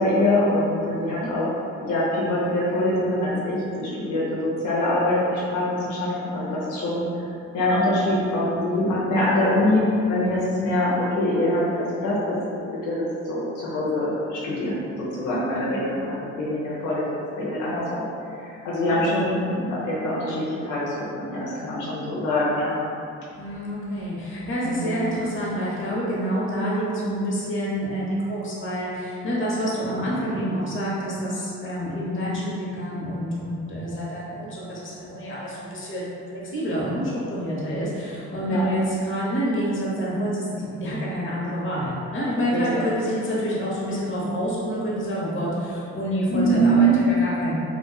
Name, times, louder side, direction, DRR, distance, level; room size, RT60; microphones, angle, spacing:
voice 1, 0.0-1.5 1.8-7.1 7.5-12.4 12.8-18.0 18.4-22.7 24.6-25.0 38.5-38.6 42.5-42.9 46.3-46.9, equal, 85° left, -7 dB, 0.8 m, -24 dB
voice 2, 1.0-1.3 15.4-16.1 18.6-19.3 23.3-47.6, equal, 40° left, -6 dB, 1.0 m, -28 dB
3.9 x 2.4 x 2.3 m, 2.6 s
cardioid pair, 90°, 30 cm